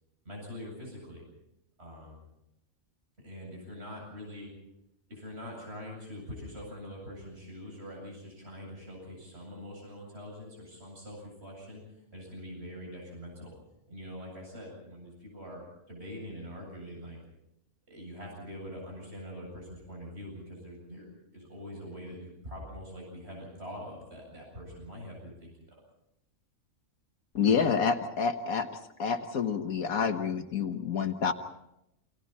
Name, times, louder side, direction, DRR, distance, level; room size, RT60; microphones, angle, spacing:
voice 1, 0.2-1.2 1.8-2.2 3.2-4.5 5.1-11.8 12.1-13.5 13.9-17.2 17.9-25.8, equal, 50° right, -1 dB, 8.3 m, -44 dB
voice 2, 27.3-28.7 29.0-31.3, left 6 dB, 80° left, 6 dB, 1.7 m, -28 dB
29.5 x 26.0 x 4.3 m, 0.85 s
omnidirectional pair, 1.5 m